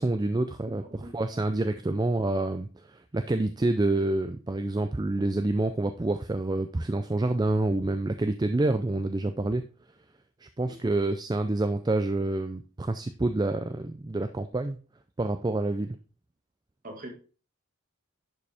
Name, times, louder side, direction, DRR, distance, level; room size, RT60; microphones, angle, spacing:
voice 1, 0.0-9.6 10.4-14.8 15.2-16.0, right 2 dB, 20° right, 9 dB, 0.4 m, -28 dB
voice 2, 1.0-1.4 10.6-10.9 16.8-17.1, right 1 dB, 40° right, 2 dB, 1.9 m, -43 dB
10.5 x 5.1 x 3.5 m, 0.36 s
head